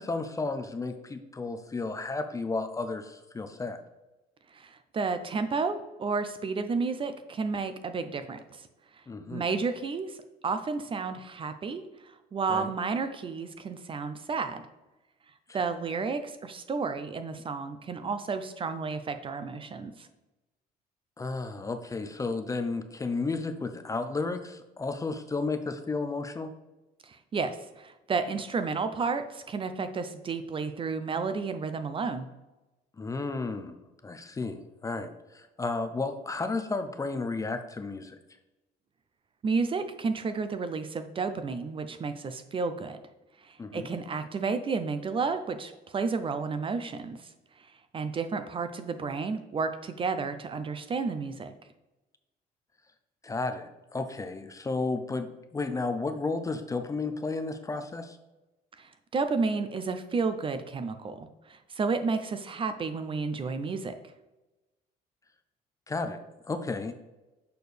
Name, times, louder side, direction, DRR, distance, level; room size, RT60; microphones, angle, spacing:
voice 1, 0.0-3.8 9.1-9.4 12.5-12.7 15.5-15.6 21.2-26.5 33.0-38.2 43.6-43.9 53.2-58.2 65.9-66.2 66.5-66.9, left 3 dB, 20° left, 7 dB, 0.5 m, -33 dB
voice 2, 4.5-8.7 9.3-10.2 10.4-14.7 15.5-20.1 27.0-32.3 39.4-43.0 43.4-47.2 47.9-51.5 58.8-63.9, right 4 dB, 30° right, 9 dB, 0.5 m, -31 dB
6.6 x 4.3 x 3.3 m, 1.0 s
cardioid pair, 110°, 17 cm